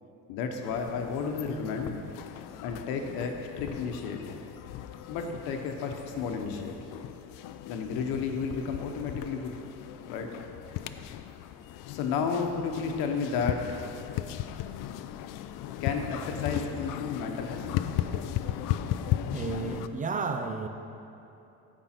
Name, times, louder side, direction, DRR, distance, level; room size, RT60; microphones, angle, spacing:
voice 1, 0.3-2.0 2.6-4.2 5.1-6.8 7.7-9.6 10.0-10.3 11.9-13.8 15.6-17.7, left 5 dB, 90° left, 4 dB, 1.0 m, -32 dB
sound 1, 0.6-19.9, left 12 dB, 65° left, 0.5 m, -36 dB
voice 2, 19.3-20.7, right 4 dB, 20° right, 6 dB, 0.5 m, -32 dB
14.5 x 5.3 x 4.4 m, 2.9 s
cardioid pair, 135°, 35 cm